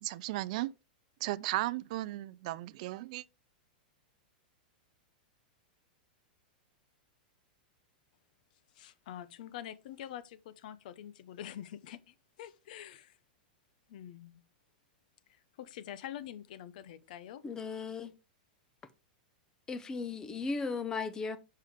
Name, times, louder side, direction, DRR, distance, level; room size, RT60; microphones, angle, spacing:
voice 1, 0.0-0.7 1.2-3.2, right 17 dB, 50° right, 0.3 m, -35 dB
voice 2, 8.7-13.2 13.9-14.4 15.3-17.5, left 11 dB, 60° left, 0.7 m, -46 dB
voice 3, 17.4-18.1 19.7-21.4, left 4 dB, 15° left, 0.6 m, -36 dB
6.5 x 5.6 x 3.5 m
supercardioid pair, 160°, 5 cm